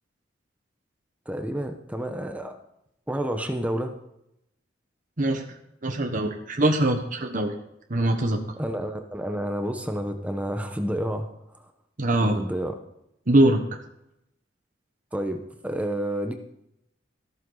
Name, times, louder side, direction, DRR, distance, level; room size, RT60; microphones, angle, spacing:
voice 1, 1.3-2.5 3.1-4.0 8.6-11.3 12.2-12.8 15.1-16.3, equal, 10° right, 5 dB, 1.2 m, -29 dB
voice 2, 5.8-7.5 7.9-8.4 12.0-12.4 13.3-13.6, right 1 dB, 45° right, 3 dB, 1.3 m, -22 dB
14.5 x 13.0 x 4.1 m, 0.80 s
head